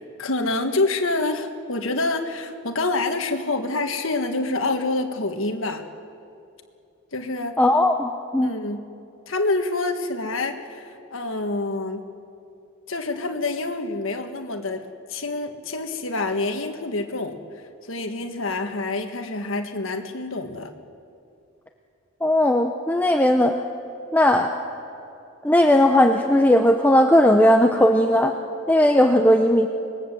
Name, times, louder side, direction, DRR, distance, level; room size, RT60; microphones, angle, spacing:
voice 1, 0.2-5.8 7.1-7.6 8.4-8.9 9.3-12.1 12.9-14.8 15.1-17.4 17.9-20.7, left 2 dB, 65° left, 5 dB, 1.6 m, -27 dB
voice 2, 7.6-8.5 22.2-23.5 24.1-24.5 25.4-28.4 28.7-29.7, left 1 dB, 10° left, 4 dB, 0.7 m, -17 dB
26.0 x 20.5 x 7.8 m, 2.7 s
head